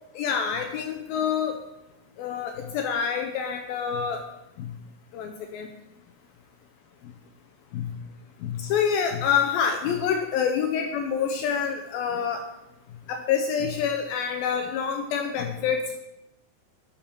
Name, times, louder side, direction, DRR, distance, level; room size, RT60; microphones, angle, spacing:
voice 1, 0.2-1.6 2.2-4.2 4.6-4.7 5.1-5.7 7.7-7.8 8.4-12.4 13.1-16.0, left 7 dB, 85° left, 5 dB, 2.2 m, -27 dB
11.5 x 7.0 x 4.5 m, 0.92 s
omnidirectional pair, 4.9 m